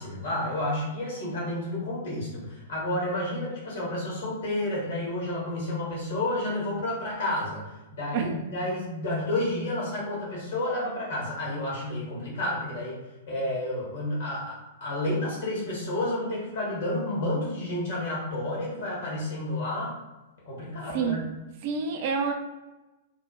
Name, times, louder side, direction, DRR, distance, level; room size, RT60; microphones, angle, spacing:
voice 1, 0.0-7.6 8.0-13.0 13.3-19.9 20.4-21.3, left 1 dB, 60° left, -4 dB, 1.4 m, -30 dB
voice 2, 21.6-22.3, right 6 dB, 50° right, 3 dB, 0.4 m, -27 dB
3.2 x 2.1 x 3.0 m, 1.1 s
figure-of-eight pair, 105°, 0 cm